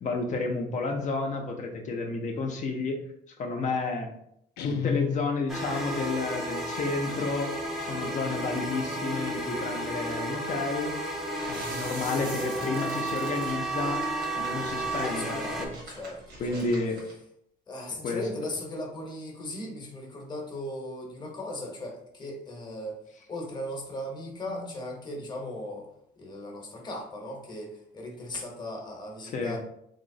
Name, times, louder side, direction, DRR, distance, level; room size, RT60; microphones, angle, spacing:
voice 1, 0.0-3.0 3.4-4.1 4.6-10.9 11.4-14.0 14.4-15.7 16.4-17.0 18.0-18.2 24.5-24.7 29.3-29.6, left 3 dB, 45° left, 2 dB, 0.6 m, -31 dB
Guitar, 4.6-5.8, left 8 dB, 90° left, 0.4 m, -32 dB
sound 1, 5.5-15.7, right 1 dB, ahead, 0.6 m, -32 dB
sound 2, 11.3-17.1, right 2 dB, 75° right, 1.3 m, -45 dB
voice 2, 14.9-16.6 17.7-23.0 23.3-25.9 26.2-29.6, left 1 dB, 25° left, 0 dB, 0.9 m, -38 dB
3.0 x 2.9 x 2.7 m, 0.73 s
cardioid pair, 110°, 17 cm